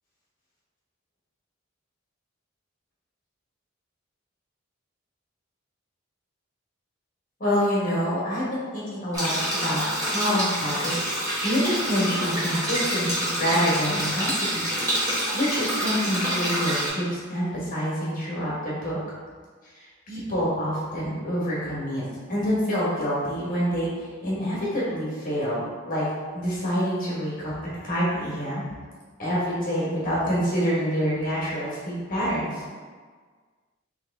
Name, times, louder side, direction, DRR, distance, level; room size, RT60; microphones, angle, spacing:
voice 1, 7.4-9.8 10.1-11.1 11.4-14.7 15.3-19.0 19.6-26.1 26.3-27.5 27.8-28.6 29.2-32.6, equal, 45° left, -7 dB, 1.3 m, -27 dB
sound 1, 9.1-16.9, equal, 15° right, 1.2 m, -27 dB
3.3 x 3.3 x 3.4 m, 1.5 s
head